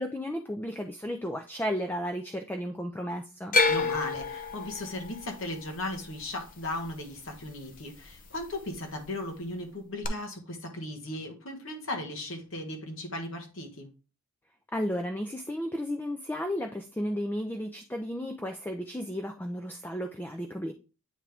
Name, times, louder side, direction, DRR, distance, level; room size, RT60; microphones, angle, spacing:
voice 1, 0.0-3.6 14.7-20.7, equal, 10° left, 0.3 m, -33 dB
sound 1, 3.5-7.7 8.0-8.7 10.0-10.1, left 3 dB, 40° left, 0.7 m, -29 dB
voice 2, 3.6-13.9, left 1 dB, 60° left, 1.3 m, -37 dB
8.7 x 3.6 x 3.4 m
head